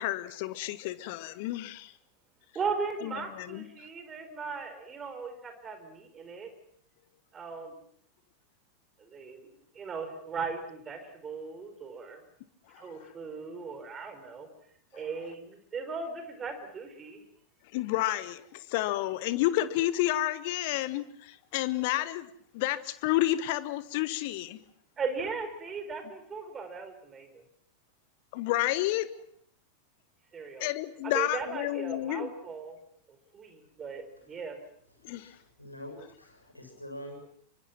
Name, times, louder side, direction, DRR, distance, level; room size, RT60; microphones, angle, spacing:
voice 1, 0.0-1.9 3.0-3.7 12.7-13.1 14.9-15.1 17.7-24.6 28.3-29.1 30.6-32.3 35.0-35.4, left 15 dB, 50° left, 15 dB, 1.3 m, -30 dB
voice 2, 2.5-6.5 7.3-7.7 9.0-12.2 12.8-14.5 14.9-17.2 25.0-27.3 30.3-30.7 31.0-32.8 33.3-34.6, right 5 dB, 20° right, 7 dB, 4.6 m, -37 dB
voice 3, 35.1-37.2, equal, 85° left, 2 dB, 6.9 m, -45 dB
27.0 x 24.5 x 6.0 m, 0.64 s
figure-of-eight pair, 90°, 0 cm